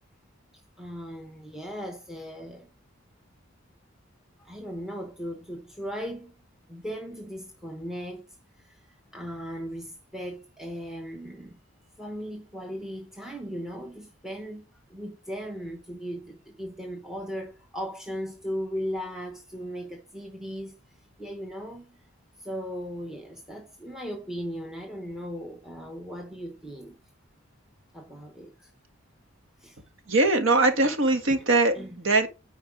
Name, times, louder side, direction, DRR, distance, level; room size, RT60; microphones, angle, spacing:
voice 1, 0.8-2.7 4.4-6.3 6.7-8.3 8.6-8.8 9.1-11.6 12.0-20.8 21.2-22.0 22.4-27.0 27.9-28.7 29.6-29.8 31.7-32.0, equal, ahead, 0.9 m, -37 dB
voice 2, 30.1-32.3, right 2 dB, 65° right, 1.6 m, -22 dB
9.8 x 4.6 x 4.9 m
head